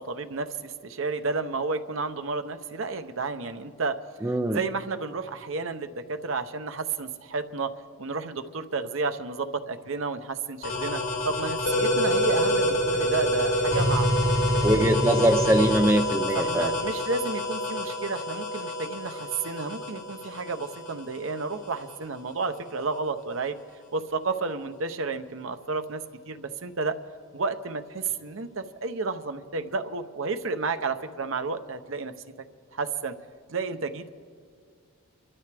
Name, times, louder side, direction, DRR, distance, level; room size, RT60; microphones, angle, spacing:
voice 1, 0.0-4.0 4.2-7.7 8.0-11.0 11.3-15.0 16.3-23.6 23.9-26.9 27.3-32.1 32.7-33.1 33.5-34.1, right 4 dB, 70° right, 8 dB, 0.8 m, -31 dB
voice 2, 4.2-4.6 14.6-16.7, right 1 dB, 10° right, 6 dB, 0.4 m, -22 dB
sound 1, 10.6-22.0, left 1 dB, 85° left, 2.9 m, -27 dB
27.0 x 13.0 x 3.4 m, 2.1 s
head